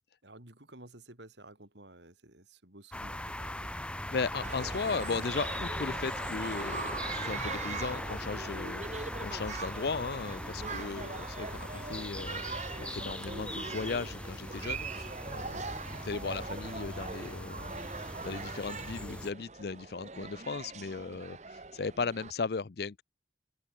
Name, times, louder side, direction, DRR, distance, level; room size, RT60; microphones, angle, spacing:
voice 1, 0.2-3.7 10.6-11.0 15.5-15.7, right 1 dB, 75° right, 5.0 m, -53 dB
sound 1, 2.9-19.3, left 1 dB, 5° left, 3.3 m, -40 dB
voice 2, 4.1-15.7 16.0-23.0, left 4 dB, 60° left, 0.5 m, -37 dB
sound 2, 4.4-22.3, right 4 dB, 40° right, 1.3 m, -42 dB
open air
head